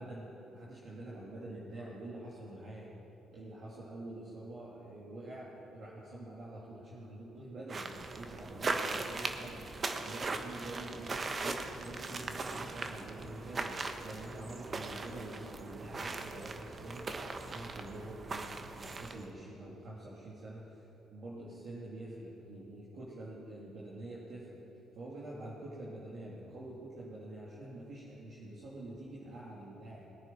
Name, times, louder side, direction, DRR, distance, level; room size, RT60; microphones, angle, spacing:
voice 1, 0.0-2.9 3.3-9.6 10.0-11.2 11.4-17.1 17.4-20.8 21.1-24.6 24.9-30.1, right 1 dB, 60° right, -7 dB, 2.9 m, -46 dB
sound 1, 7.7-19.3, right 3 dB, 40° right, 1.2 m, -39 dB
20.5 x 9.4 x 5.9 m, 3.0 s
supercardioid pair, 60°, 0 cm